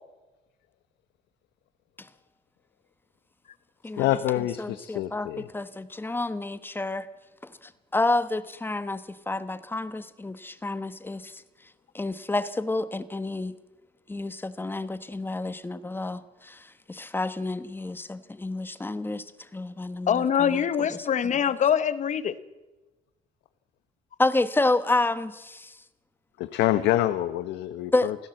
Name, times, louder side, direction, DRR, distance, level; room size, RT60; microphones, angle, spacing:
voice 1, 3.9-5.5 26.4-28.2, left 14 dB, 85° left, 12 dB, 1.0 m, -26 dB
voice 2, 4.6-5.3 5.5-7.1 7.4-7.5 7.9-11.4 11.9-13.5 14.1-19.2 19.5-21.1 24.2-25.7 27.9-28.1, left 2 dB, 10° left, 13 dB, 1.2 m, -29 dB
voice 3, 20.1-22.3, left 8 dB, 45° left, 15 dB, 1.2 m, -24 dB
27.0 x 16.0 x 7.8 m, 1.1 s
cardioid pair, 110°, 17 cm